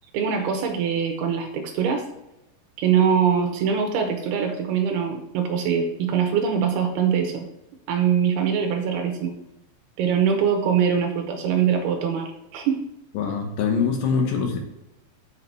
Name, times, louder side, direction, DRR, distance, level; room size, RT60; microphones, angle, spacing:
voice 1, 0.1-2.0 2.8-7.5 7.9-9.3 10.0-12.8, right 7 dB, 75° right, 3 dB, 2.6 m, -23 dB
voice 2, 13.2-14.6, left 5 dB, 70° left, 3 dB, 2.1 m, -23 dB
8.1 x 5.7 x 4.6 m, 0.92 s
omnidirectional pair, 5.1 m